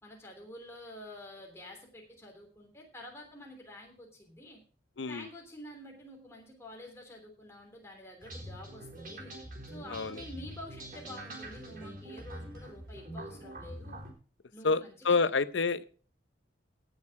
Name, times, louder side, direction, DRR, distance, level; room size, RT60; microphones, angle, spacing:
voice 1, 0.0-4.6 5.1-9.3 9.7-14.0 14.5-15.2, left 1 dB, 15° left, 0 dB, 3.2 m, -48 dB
voice 2, 5.0-5.3 9.9-10.2 14.6-15.8, left 4 dB, 85° left, 15 dB, 0.7 m, -28 dB
sound 1, 8.2-14.1, right 1 dB, 50° right, 3.9 m, -44 dB
17.0 x 6.5 x 4.7 m, 0.40 s
head